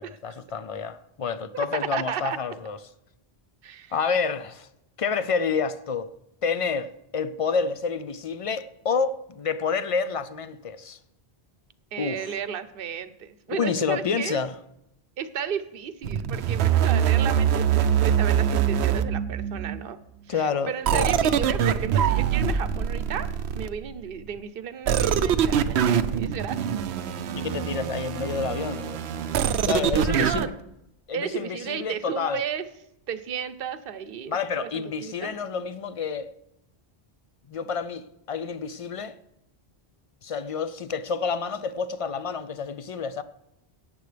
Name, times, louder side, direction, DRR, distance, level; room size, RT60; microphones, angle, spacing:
voice 1, 0.0-2.8 3.9-4.7 5.0-6.1 6.4-11.0 12.0-12.3 13.5-14.5 20.3-21.1 27.3-29.1 29.7-30.5 31.1-32.4 34.3-36.3 37.5-39.2 40.2-43.2, left 5 dB, 55° left, 0.4 m, -29 dB
voice 2, 1.9-2.4 3.6-3.9 11.9-14.4 15.2-20.0 20.3-26.8 29.9-30.5 31.1-32.6 33.1-35.3, right 8 dB, 65° right, 0.9 m, -33 dB
sound 1, 16.0-19.8 20.9-23.9 24.9-30.5, right 8 dB, 85° right, 0.9 m, -24 dB
17.0 x 9.2 x 3.3 m
omnidirectional pair, 1.1 m